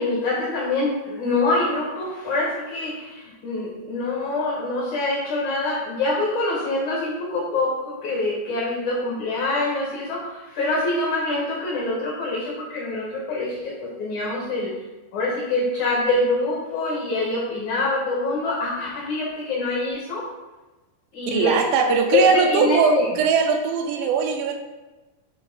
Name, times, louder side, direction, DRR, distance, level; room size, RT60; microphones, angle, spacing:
voice 1, 0.0-14.7 15.1-20.2 21.1-21.6 21.9-23.1, left 2 dB, 65° left, -4 dB, 1.9 m, -25 dB
voice 2, 21.3-24.5, right 5 dB, 85° right, 4 dB, 2.9 m, -20 dB
8.6 x 2.9 x 4.4 m, 1.2 s
omnidirectional pair, 5.0 m